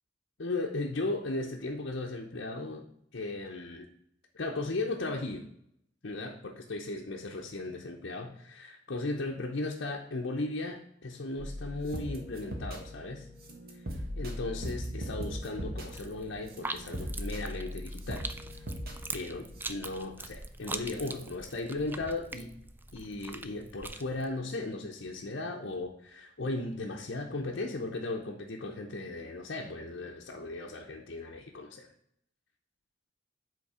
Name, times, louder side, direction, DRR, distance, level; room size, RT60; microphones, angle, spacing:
voice 1, 0.4-2.9 3.1-3.9 4.3-5.5 6.0-13.3 14.2-18.3 19.1-22.5 22.9-31.9, left 2 dB, 60° left, -2 dB, 0.8 m, -36 dB
sound 1, 11.4-19.7, equal, 55° right, 1.5 m, -39 dB
sound 2, 15.9-24.3, right 3 dB, 10° right, 0.4 m, -43 dB
8.0 x 3.8 x 4.9 m, 0.72 s
head